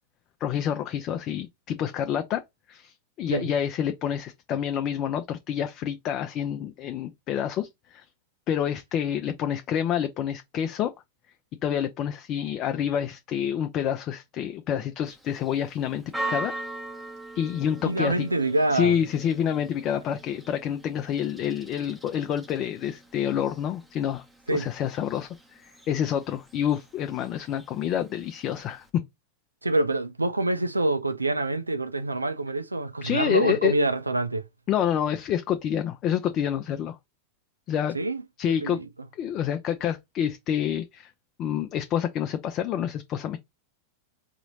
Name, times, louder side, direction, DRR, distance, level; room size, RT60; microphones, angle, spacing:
voice 1, 0.4-2.4 2.7-8.1 8.5-10.9 11.6-16.6 17.3-18.3 18.7-29.0 33.0-33.7 34.7-37.0 37.7-37.9 38.4-38.8 39.1-41.1 41.4-43.4, left 9 dB, 35° left, 0.4 m, -28 dB
Church bell, 15.1-28.9, right 2 dB, 5° right, 0.9 m, -41 dB
voice 2, 17.8-19.0 24.5-24.7 29.6-34.5 37.9-38.2 38.6-38.8, right 2 dB, 80° right, 0.5 m, -26 dB
4.0 x 3.0 x 3.9 m
figure-of-eight pair, 90°, 0 cm